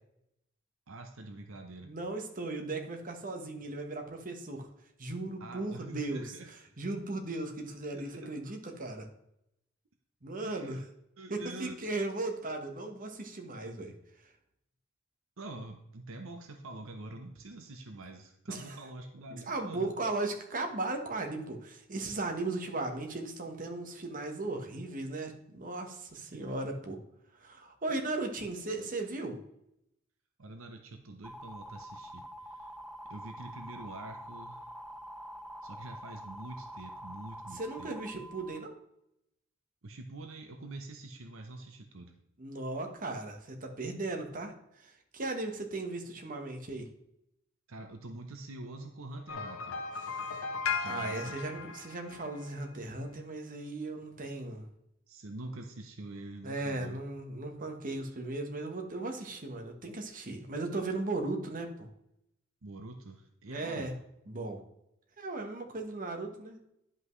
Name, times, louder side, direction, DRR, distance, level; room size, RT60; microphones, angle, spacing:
voice 1, 0.9-1.9 5.4-6.5 7.9-8.5 10.4-10.8 11.2-11.8 15.4-19.9 26.3-26.5 30.4-32.7 33.1-34.7 35.6-37.9 39.8-42.1 47.7-49.8 50.8-51.4 55.1-57.0 62.6-63.9, right 2 dB, 70° right, 5 dB, 0.8 m, -46 dB
voice 2, 1.8-4.7 5.0-6.3 6.8-9.1 10.2-10.8 11.3-13.9 18.5-18.8 19.3-27.0 27.4-29.4 37.5-38.8 42.4-46.9 50.0-50.4 50.8-54.7 56.4-61.9 63.5-63.9 64.3-64.6 65.2-66.6, right 2 dB, 40° right, 3 dB, 1.2 m, -37 dB
sound 1, 31.2-38.6, equal, ahead, 0.3 m, -46 dB
sound 2, 49.3-52.6, left 5 dB, 85° left, 0.9 m, -37 dB
10.0 x 5.5 x 3.1 m, 0.78 s
head